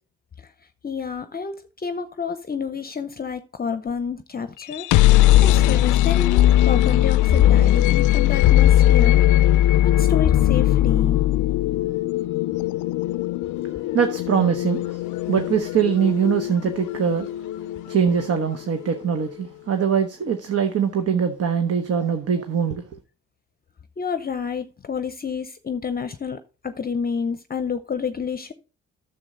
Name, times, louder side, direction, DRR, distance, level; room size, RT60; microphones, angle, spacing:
voice 1, 0.8-4.9 5.4-9.2 9.8-11.2 24.0-28.5, left 6 dB, 30° left, 0.7 m, -28 dB
sound 1, 4.6-18.5, left 13 dB, 80° left, 0.4 m, -19 dB
voice 2, 13.6-17.3 17.9-22.8, right 7 dB, 50° right, 1.1 m, -22 dB
9.7 x 7.0 x 3.8 m
cardioid pair, 90°, 30 cm